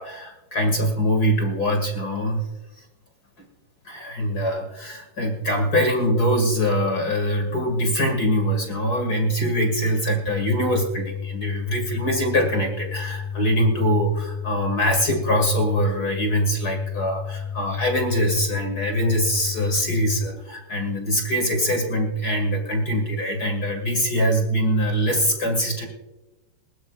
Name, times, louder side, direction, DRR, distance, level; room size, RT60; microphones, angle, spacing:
voice 1, 0.0-2.5 2.8-2.9 3.8-25.9, equal, 40° left, 3 dB, 1.4 m, -23 dB
sound 1, 10.3-20.3, left 7 dB, 85° left, 3.4 m, -32 dB
20.5 x 18.0 x 2.4 m, 1.0 s
omnidirectional pair, 4.8 m